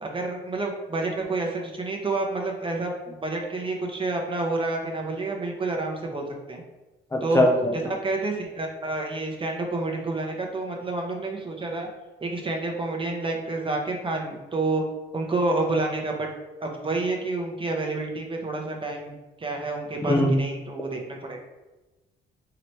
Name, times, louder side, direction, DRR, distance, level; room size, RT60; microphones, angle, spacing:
voice 1, 0.0-6.6 7.2-7.4 7.7-11.9 12.2-14.8 15.1-16.3 16.6-21.4, right 2 dB, 25° right, 1 dB, 0.8 m, -29 dB
voice 2, 7.1-7.7 20.0-20.3, left 1 dB, 15° left, 0 dB, 0.5 m, -21 dB
4.0 x 2.9 x 3.2 m, 1.1 s
cardioid pair, 90°, 20 cm